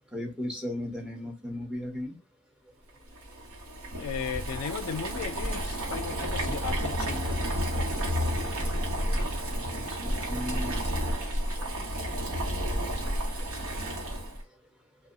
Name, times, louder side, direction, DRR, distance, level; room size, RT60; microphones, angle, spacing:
voice 1, 0.1-2.2 6.4-6.6 9.1-9.2 9.5-10.8 11.6-11.7 12.1-12.3 12.6-12.7, left 1 dB, 5° right, 0.7 m, -37 dB
Boiling, 3.1-14.4, equal, 80° right, 0.9 m, -31 dB
voice 2, 3.9-7.5, left 7 dB, 80° left, 0.4 m, -36 dB
2.1 x 2.0 x 3.6 m
head